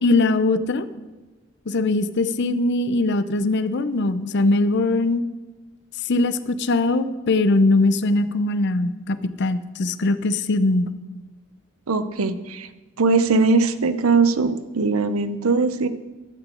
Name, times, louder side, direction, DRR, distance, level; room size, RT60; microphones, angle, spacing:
voice 1, 0.0-0.9 1.7-5.2 6.1-10.9, left 2 dB, 55° left, 13 dB, 0.6 m, -21 dB
voice 2, 11.9-12.7 13.0-15.9, right 4 dB, 85° right, 12 dB, 0.7 m, -20 dB
12.0 x 6.0 x 7.8 m, 1.2 s
head